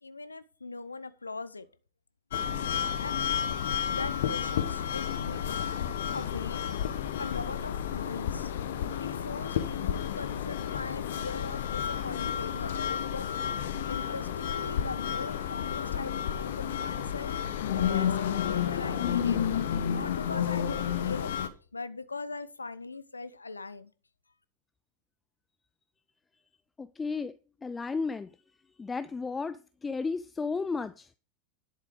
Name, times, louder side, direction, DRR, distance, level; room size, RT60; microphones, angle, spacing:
voice 1, 0.0-1.7 3.0-3.3 3.9-5.5 6.1-6.7 7.2-8.5 9.0-13.3 13.5-17.4 17.7-19.5 19.9-23.9, left 3 dB, 80° left, 0.7 m, -40 dB
sound 1, 2.3-21.5, left 9 dB, 60° left, 1.1 m, -31 dB
voice 2, 26.8-27.3 27.6-28.3 28.8-31.2, left 4 dB, 15° left, 0.4 m, -33 dB
11.0 x 7.5 x 4.9 m
figure-of-eight pair, 90°, 0 cm